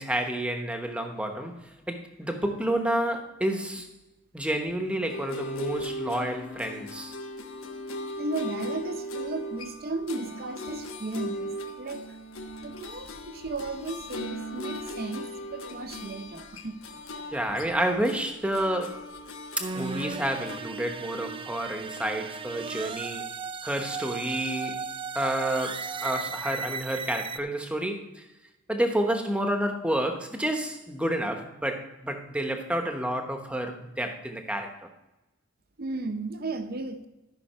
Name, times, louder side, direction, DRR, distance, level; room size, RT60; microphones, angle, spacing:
voice 1, 0.0-3.9 4.3-7.2 17.3-19.0 19.6-23.3 23.6-24.8 25.1-28.2 28.7-34.8, right 1 dB, 5° right, 4 dB, 1.0 m, -29 dB
sound 1, 5.1-20.6, equal, 70° left, 1.1 m, -38 dB
voice 2, 8.2-12.2 12.6-17.0 35.8-37.1, right 2 dB, 45° right, 8 dB, 0.8 m, -35 dB
sound 2, 19.6-27.4, right 5 dB, 25° right, 0.3 m, -36 dB
13.5 x 5.5 x 5.5 m, 0.99 s
head